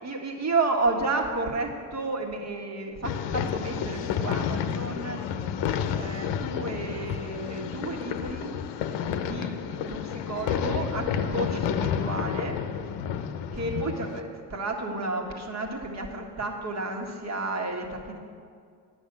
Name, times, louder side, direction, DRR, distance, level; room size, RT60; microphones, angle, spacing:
voice 1, 0.0-5.2 5.9-8.5 9.3-12.6 13.5-14.2 14.5-18.2, right 2 dB, 35° right, 2 dB, 1.7 m, -31 dB
sound 1, 3.0-14.2, left 8 dB, 70° left, 0.9 m, -30 dB
10.0 x 6.4 x 7.5 m, 2.2 s
supercardioid pair, 85°, 45 cm